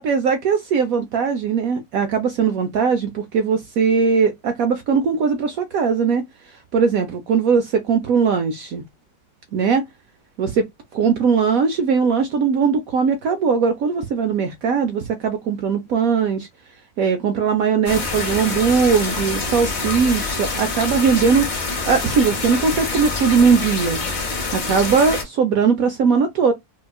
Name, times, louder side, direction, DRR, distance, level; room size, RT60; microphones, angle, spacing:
voice 1, 0.0-6.2 6.7-8.8 9.5-9.8 10.4-10.6 10.9-16.5 17.0-21.5 21.9-24.0 24.5-26.5, right 6 dB, 75° right, 0.8 m, -19 dB
sound 1, 17.9-25.2, left 3 dB, 45° left, 0.6 m, -26 dB
4.4 x 2.3 x 2.3 m
omnidirectional pair, 2.0 m